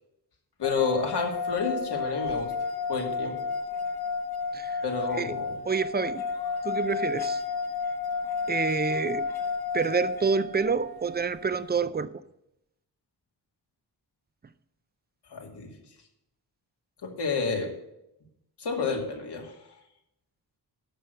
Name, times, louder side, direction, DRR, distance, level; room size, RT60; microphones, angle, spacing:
voice 1, 0.6-2.5 2.9-3.4 4.8-5.6 15.3-15.7 17.0-17.7 18.6-19.5, left 5 dB, 85° left, 1 dB, 2.3 m, -30 dB
sound 1, 0.6-11.8, left 5 dB, 65° left, 1.4 m, -32 dB
voice 2, 5.6-6.2 6.6-7.4 8.5-9.3 9.7-12.1, right 5 dB, 25° right, 14 dB, 0.5 m, -28 dB
11.5 x 6.2 x 6.6 m, 0.82 s
wide cardioid pair, 125°, 40 cm